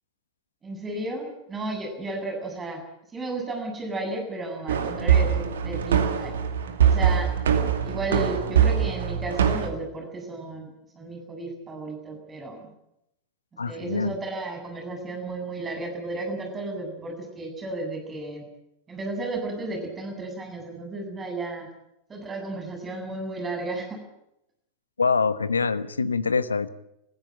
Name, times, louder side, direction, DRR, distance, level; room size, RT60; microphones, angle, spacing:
voice 1, 0.6-2.8 3.1-6.3 6.8-7.3 7.8-12.7 13.7-18.4 18.9-21.7 22.1-24.0, right 2 dB, 20° right, 3 dB, 8.0 m, -33 dB
sound 1, 4.7-9.7, right 8 dB, 65° right, 2.3 m, -22 dB
voice 2, 13.6-14.1 25.0-26.7, left 4 dB, 75° left, 15 dB, 1.1 m, -24 dB
29.0 x 15.5 x 9.0 m, 0.82 s
figure-of-eight pair, 90°, 0 cm